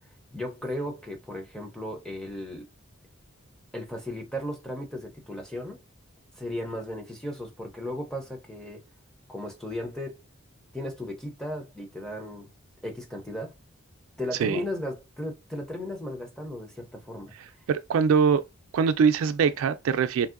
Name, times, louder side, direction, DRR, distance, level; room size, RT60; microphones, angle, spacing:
voice 1, 0.3-2.7 3.7-5.8 6.4-8.8 9.3-10.2 10.7-12.5 12.8-13.5 14.2-17.3, left 1 dB, 5° left, 0.4 m, -35 dB
voice 2, 17.7-18.4 18.7-20.3, right 6 dB, 70° right, 0.3 m, -22 dB
3.0 x 2.6 x 2.4 m
head